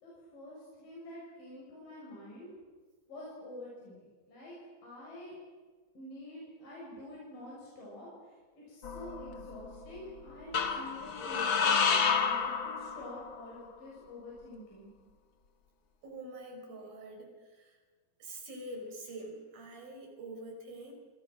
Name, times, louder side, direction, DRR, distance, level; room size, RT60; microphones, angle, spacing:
voice 1, 0.0-2.5 3.1-4.0 4.3-4.5 4.8-5.3 5.9-11.9 12.3-14.9 16.8-16.9, left 1 dB, 65° left, -5 dB, 8.4 m, -47 dB
sound 1, 8.8-9.7 10.5-13.4, left 6 dB, 45° left, 1.8 m, -30 dB
voice 2, 16.0-17.8 18.2-20.9, right 1 dB, 75° right, 3 dB, 6.8 m, -45 dB
30.0 x 26.0 x 6.2 m, 1.4 s
omnidirectional pair, 4.2 m